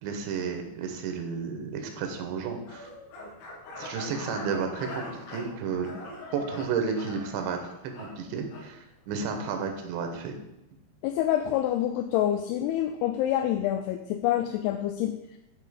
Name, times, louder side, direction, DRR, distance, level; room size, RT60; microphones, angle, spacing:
voice 1, 0.0-2.9 3.7-6.0 6.3-10.4, right 5 dB, 85° right, 5 dB, 3.3 m, -32 dB
sound 1, 2.6-8.7, left 1 dB, 65° left, 3.2 m, -42 dB
voice 2, 11.0-15.4, left 12 dB, 85° left, 6 dB, 2.4 m, -27 dB
11.0 x 3.9 x 5.0 m, 0.90 s
omnidirectional pair, 5.1 m